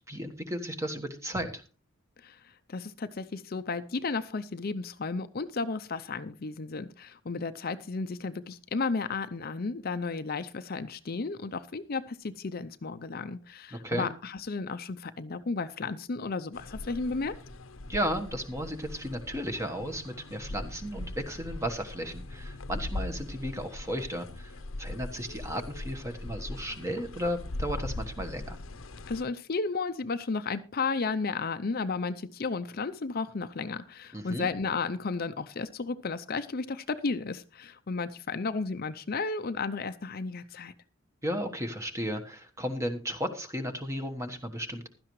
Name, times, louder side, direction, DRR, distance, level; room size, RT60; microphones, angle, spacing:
voice 1, 0.1-1.6 13.7-14.1 17.9-28.6 34.1-34.5 41.2-44.9, equal, 15° right, 6 dB, 1.2 m, -34 dB
voice 2, 2.7-17.3 29.1-40.7, left 4 dB, 45° left, 11 dB, 0.6 m, -33 dB
sound 1, 16.5-29.2, left 2 dB, 75° left, 0.8 m, -40 dB
16.0 x 12.0 x 3.1 m, 0.35 s
head